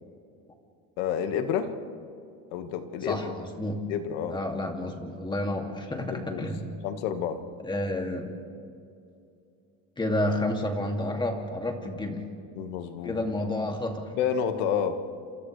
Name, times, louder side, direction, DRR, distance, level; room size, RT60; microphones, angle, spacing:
voice 1, 1.0-1.7 2.5-3.3 3.9-4.4 6.0-6.4 6.8-7.4 12.6-13.2 14.1-15.0, left 8 dB, 90° left, 7 dB, 1.8 m, -29 dB
voice 2, 3.0-3.8 4.3-6.8 7.6-8.4 10.0-12.2 13.0-14.1, left 1 dB, 15° left, 2 dB, 2.5 m, -30 dB
28.5 x 27.0 x 3.3 m, 2.4 s
cardioid pair, 135°, 36 cm